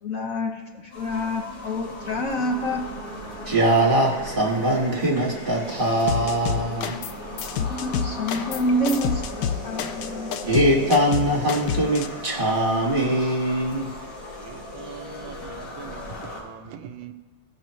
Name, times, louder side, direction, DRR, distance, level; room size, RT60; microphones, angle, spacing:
voice 1, 0.0-2.8 7.6-10.3, left 1 dB, 60° left, 1.0 m, -27 dB
sound 1, 0.9-16.4, left 2 dB, 90° left, 3.7 m, -38 dB
sound 2, 2.0-12.2, right 2 dB, 5° left, 2.8 m, -41 dB
voice 2, 3.5-7.0 10.4-13.9, right 1 dB, 30° right, 1.6 m, -22 dB
sound 3, 6.1-7.1 7.4-12.1, left 8 dB, 75° left, 0.9 m, -28 dB
voice 3, 14.4-17.1, right 8 dB, 85° right, 1.4 m, -41 dB
15.5 x 6.2 x 3.1 m
omnidirectional pair, 2.1 m